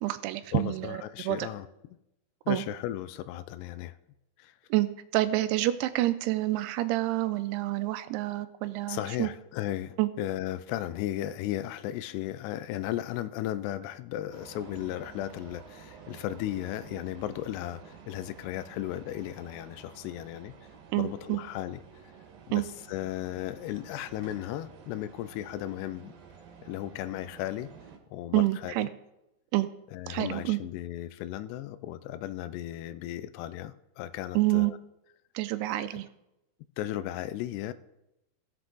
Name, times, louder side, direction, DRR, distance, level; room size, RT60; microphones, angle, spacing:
voice 1, 0.0-1.5 2.5-2.6 4.7-9.3 10.0-10.1 20.9-21.4 22.5-22.6 28.3-28.9 29.5-29.7 30.1-30.6 34.4-34.7 35.4-36.1, right 17 dB, 85° right, 12 dB, 2.5 m, -28 dB
voice 2, 0.5-1.7 2.5-4.0 4.4-4.5 8.9-20.6 21.0-21.8 22.5-26.1 26.6-27.7 28.1-28.9 29.9-34.8 35.8-35.9 36.8-37.7, left 13 dB, 85° left, 14 dB, 2.7 m, -35 dB
sound 1, 14.3-28.0, right 6 dB, 65° right, 2.9 m, -51 dB
16.5 x 7.8 x 3.8 m, 0.89 s
omnidirectional pair, 4.7 m